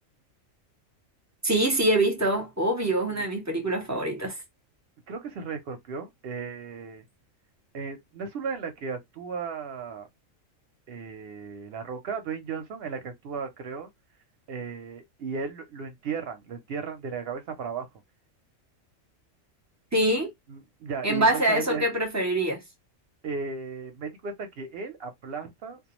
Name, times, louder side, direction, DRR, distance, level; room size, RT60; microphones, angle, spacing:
voice 1, 1.4-4.4 19.9-20.3 21.0-22.6, right 1 dB, 20° right, 0.5 m, -24 dB
voice 2, 5.1-7.0 7.7-10.1 10.9-13.9 14.5-17.9 20.5-21.9 23.2-25.8, right 5 dB, 65° right, 0.6 m, -35 dB
2.3 x 2.2 x 2.9 m
omnidirectional pair, 1.4 m